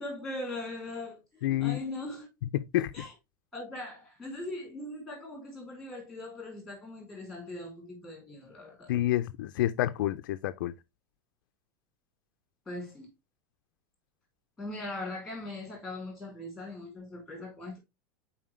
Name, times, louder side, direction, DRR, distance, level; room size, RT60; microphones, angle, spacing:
voice 1, 0.0-2.3 2.9-3.1 3.5-8.9 12.7-13.1 14.6-17.8, left 2 dB, ahead, 3.0 m, -40 dB
voice 2, 1.4-1.8 2.5-2.9 8.9-10.7, left 14 dB, 70° left, 0.5 m, -28 dB
7.3 x 4.6 x 3.2 m
supercardioid pair, 175°, 11 cm